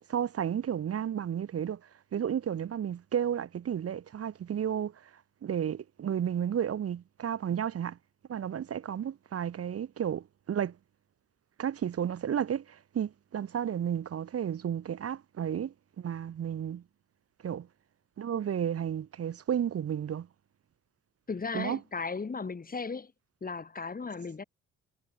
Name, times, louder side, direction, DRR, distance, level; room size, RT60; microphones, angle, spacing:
voice 1, 0.1-1.8 2.1-5.1 5.4-8.0 8.3-10.7 11.6-16.8 17.4-17.7 18.2-20.3 21.5-21.8, right 9 dB, 50° right, 1.5 m, -32 dB
voice 2, 21.3-23.1 23.4-24.4, left 4 dB, 30° left, 3.0 m, -36 dB
cardioid pair, 90°, 30 cm